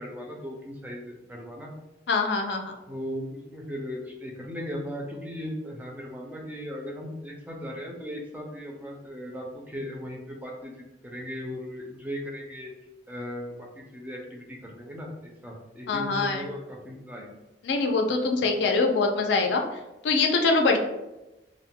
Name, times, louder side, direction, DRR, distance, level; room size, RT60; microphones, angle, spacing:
voice 1, 0.0-1.7 2.9-12.7 13.1-17.4, equal, 10° right, -1 dB, 0.4 m, -37 dB
voice 2, 2.1-2.7 15.9-16.4 17.6-19.6 20.0-20.8, left 3 dB, 75° left, 3 dB, 0.4 m, -23 dB
2.2 x 2.1 x 3.6 m, 1.0 s
head